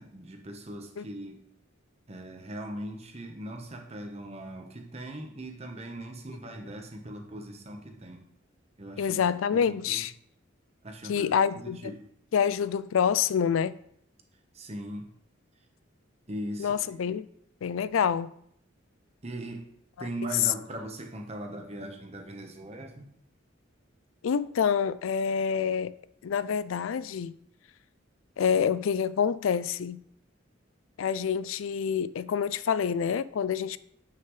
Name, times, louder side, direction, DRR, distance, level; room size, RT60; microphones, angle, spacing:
voice 1, 0.0-1.4 2.1-8.2 8.8-9.2 9.5-10.0 10.8-11.3 11.5-12.1 14.5-15.1 16.3-16.8 19.2-19.7 20.0-23.1, right 1 dB, 35° right, 1.1 m, -40 dB
voice 2, 9.0-10.1 11.1-11.9 12.3-13.8 16.6-17.3 17.6-18.3 24.2-25.9 26.2-27.4 28.4-30.0 31.0-33.8, left 7 dB, 85° left, 0.4 m, -27 dB
9.4 x 5.8 x 3.2 m
head